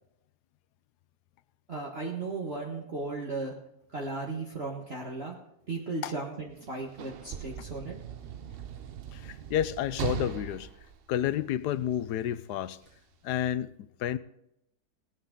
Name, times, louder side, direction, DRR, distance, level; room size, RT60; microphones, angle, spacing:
voice 1, 1.7-3.5 3.9-5.4 5.7-8.0, right 3 dB, 40° right, 1.7 m, -36 dB
Sliding door / Slam, 6.5-11.9 12.8-13.0, right 9 dB, 75° right, 0.5 m, -39 dB
voice 2, 9.1-10.7 11.1-12.8 13.2-14.2, left 11 dB, 75° left, 1.2 m, -30 dB
19.0 x 9.6 x 3.8 m
omnidirectional pair, 1.8 m